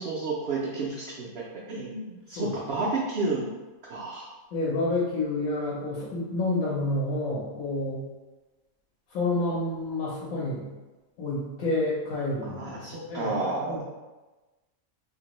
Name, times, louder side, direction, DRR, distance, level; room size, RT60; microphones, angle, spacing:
voice 1, 0.0-3.5 3.9-4.3 12.4-13.8, right 3 dB, 65° right, -4 dB, 0.6 m, -31 dB
voice 2, 4.5-8.0 9.1-10.6 11.2-13.8, left 2 dB, 90° left, -6 dB, 1.2 m, -29 dB
2.8 x 2.5 x 2.9 m, 1.2 s
omnidirectional pair, 1.4 m